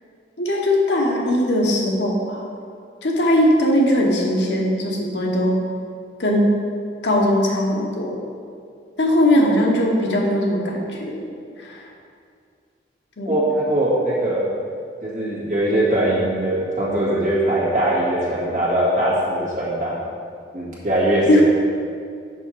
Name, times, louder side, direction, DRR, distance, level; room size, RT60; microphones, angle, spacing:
voice 1, 0.4-2.5 3.0-5.6 6.2-6.5 7.0-8.2 9.0-11.2 11.6-11.9 13.2-13.4 21.3-21.4, left 1 dB, 75° left, -1 dB, 1.1 m, -19 dB
voice 2, 13.3-14.4 15.0-20.0 20.5-21.3, right 1 dB, 45° right, -7 dB, 2.0 m, -21 dB
6.5 x 5.9 x 4.5 m, 2.3 s
head